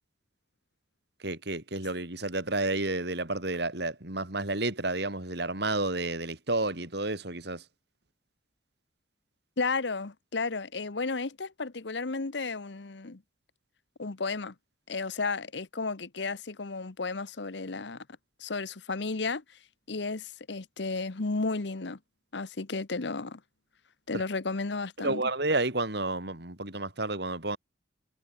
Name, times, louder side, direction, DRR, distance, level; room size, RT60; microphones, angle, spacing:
voice 1, 1.2-7.6 24.1-24.2 25.0-27.6, right 2 dB, 60° right, 4.1 m, -31 dB
voice 2, 9.6-13.2 14.0-14.5 14.9-18.0 18.4-19.4 19.9-22.0 22.3-23.4 24.1-25.2, left 3 dB, 65° left, 1.0 m, -33 dB
head